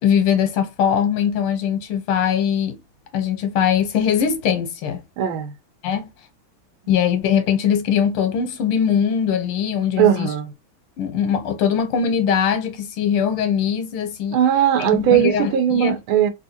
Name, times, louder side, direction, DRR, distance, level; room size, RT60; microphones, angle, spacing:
voice 1, 0.0-2.8 3.1-5.0 5.8-6.1 6.9-10.3 11.0-14.4 14.8-16.0, left 8 dB, 85° left, 1.8 m, -21 dB
voice 2, 5.2-5.5 10.0-10.5 14.3-16.3, right 10 dB, 75° right, 1.4 m, -18 dB
3.5 x 2.9 x 2.7 m
omnidirectional pair, 2.4 m